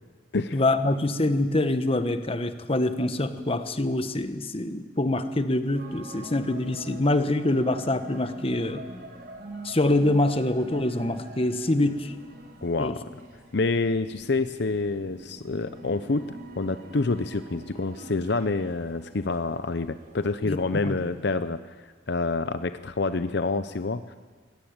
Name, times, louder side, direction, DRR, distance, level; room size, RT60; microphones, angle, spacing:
voice 1, 0.5-8.8 9.6-12.2 12.8-13.0 20.4-20.6 20.8-21.0, left 1 dB, 30° left, 10 dB, 1.2 m, -25 dB
sound 1, 5.7-21.2, right 1 dB, 55° right, 4.4 m, -45 dB
voice 2, 12.6-13.0 13.5-16.2 16.6-21.6 22.1-24.2, left 3 dB, 65° left, 11 dB, 0.7 m, -27 dB
22.5 x 17.5 x 8.8 m, 1.5 s
head